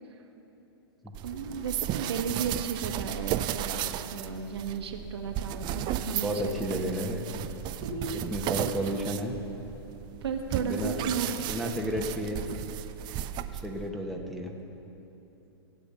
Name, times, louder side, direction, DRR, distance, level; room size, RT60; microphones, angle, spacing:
sound 1, 1.1-13.9, right 11 dB, 30° right, 0.6 m, -35 dB
voice 1, 1.2-3.8 4.1-6.9 7.8-8.2 10.2-11.3, right 6 dB, 75° right, 3 dB, 1.5 m, -34 dB
voice 2, 6.2-7.2 8.1-9.4 10.6-11.1 11.5-12.4 13.5-14.5, equal, ahead, -1 dB, 1.3 m, -32 dB
16.0 x 8.6 x 6.9 m, 3.0 s
hypercardioid pair, 110°, 14 cm